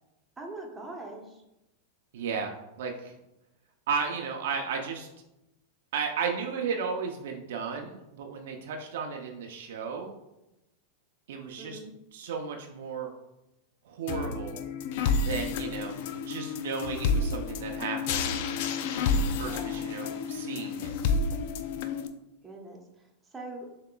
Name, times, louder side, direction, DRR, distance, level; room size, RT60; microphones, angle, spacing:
voice 1, 0.4-1.4 11.6-11.9 19.4-19.8 22.4-23.7, right 2 dB, 15° right, 0 dB, 1.0 m, -42 dB
voice 2, 2.1-3.1 3.9-5.1 5.9-10.1 11.3-11.8 12.1-13.1 13.8-14.6 15.2-16.0 16.3-18.3 19.4-20.9, right 6 dB, 70° right, 3 dB, 0.6 m, -34 dB
sound 1, 14.1-22.1, left 4 dB, 60° left, 0.4 m, -30 dB
6.8 x 2.9 x 2.3 m, 0.90 s
hypercardioid pair, 110°, 0 cm